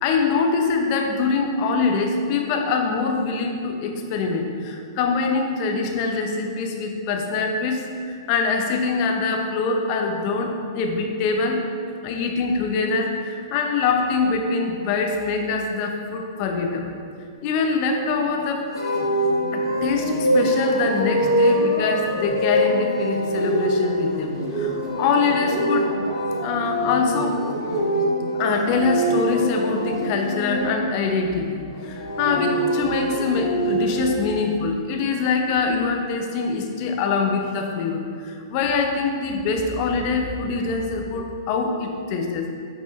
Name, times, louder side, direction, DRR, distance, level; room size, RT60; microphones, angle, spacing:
voice 1, 0.0-11.6 12.0-16.9 17.4-18.6 19.5-25.9 26.4-27.4 28.3-42.6, left 4 dB, 45° left, 3 dB, 0.8 m, -24 dB
sound 1, 18.7-30.7 31.8-34.0, equal, 85° left, 1.5 m, -24 dB
8.6 x 4.1 x 3.2 m, 2.2 s
hypercardioid pair, 115°, 2 cm